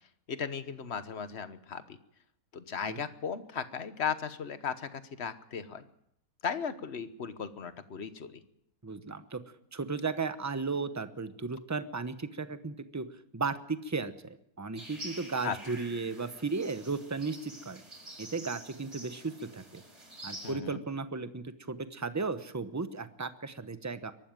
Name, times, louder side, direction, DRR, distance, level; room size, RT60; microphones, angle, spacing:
voice 1, 0.3-2.0 2.5-5.8 6.4-8.4 15.4-15.6 20.4-20.8, left 6 dB, 45° left, 12 dB, 1.3 m, -36 dB
voice 2, 8.8-9.4 9.7-13.1 13.3-17.8 18.2-19.8 20.2-24.1, right 4 dB, 15° right, 11 dB, 0.8 m, -35 dB
sound 1, 14.8-20.5, right 1 dB, 50° right, 5.3 m, -47 dB
23.0 x 12.5 x 9.1 m, 0.76 s
omnidirectional pair, 1.6 m